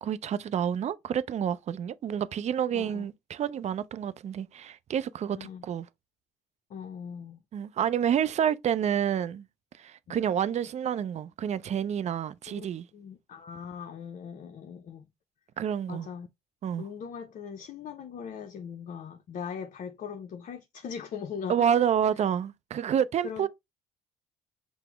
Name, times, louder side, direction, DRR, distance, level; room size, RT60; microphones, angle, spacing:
voice 1, 0.0-5.9 7.5-9.5 9.8-12.9 15.6-16.1 16.6-16.9 21.5-23.5, right 9 dB, 40° right, 0.4 m, -29 dB
voice 2, 2.7-3.1 5.3-5.7 6.7-7.4 10.1-10.2 12.5-12.7 12.9-15.1 15.9-16.3 16.8-21.7 23.2-23.5, left 7 dB, 45° left, 0.6 m, -40 dB
5.8 x 2.0 x 3.4 m
hypercardioid pair, 55°, 18 cm